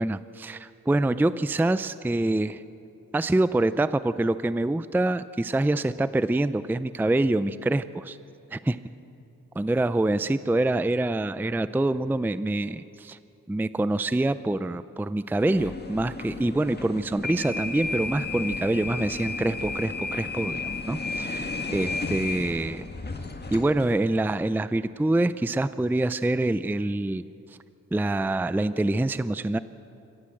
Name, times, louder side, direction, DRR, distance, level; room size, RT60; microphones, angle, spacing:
voice 1, 0.0-2.6 3.1-8.2 8.5-8.8 9.6-13.2 13.5-22.8 23.5-27.2 27.9-29.6, right 2 dB, 5° right, 14 dB, 0.5 m, -25 dB
sound 1, 15.4-24.0, left 3 dB, 30° left, 1.8 m, -33 dB
27.0 x 14.5 x 7.8 m, 2.8 s
wide cardioid pair, 90°, 33 cm